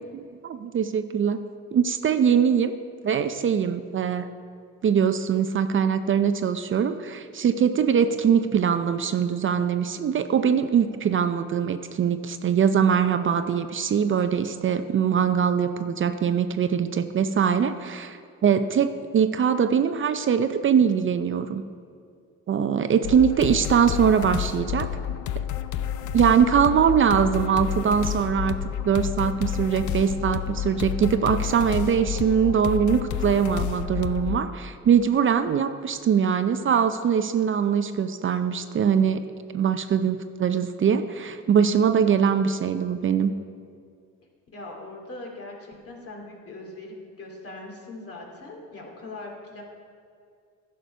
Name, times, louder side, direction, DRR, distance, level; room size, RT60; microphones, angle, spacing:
voice 1, 0.1-1.4 1.7-2.7 3.0-4.3 4.8-21.6 22.5-24.9 26.1-28.6 28.8-39.2 39.5-43.3, right 7 dB, 40° right, 10 dB, 0.5 m, -22 dB
sound 1, 23.0-34.4, left 10 dB, 75° left, 0.5 m, -30 dB
voice 2, 44.5-49.6, left 2 dB, 50° left, 0 dB, 2.4 m, -40 dB
11.0 x 6.5 x 5.5 m, 2.3 s
cardioid pair, 90°, 30 cm